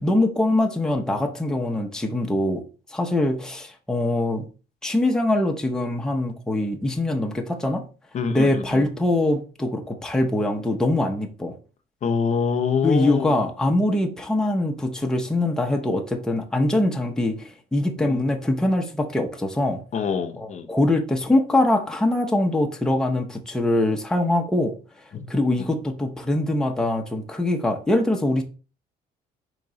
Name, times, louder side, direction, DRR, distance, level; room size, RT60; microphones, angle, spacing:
voice 1, 0.0-2.6 2.9-4.4 4.8-7.8 8.3-11.5 12.8-19.8 20.4-24.7 25.3-28.4, left 1 dB, 5° left, 0.7 m, -23 dB
voice 2, 8.1-8.8 12.0-13.4 18.0-18.2 19.9-20.7 25.1-25.2, left 6 dB, 45° left, 0.6 m, -25 dB
4.6 x 3.0 x 3.8 m
cardioid pair, 110°, 17 cm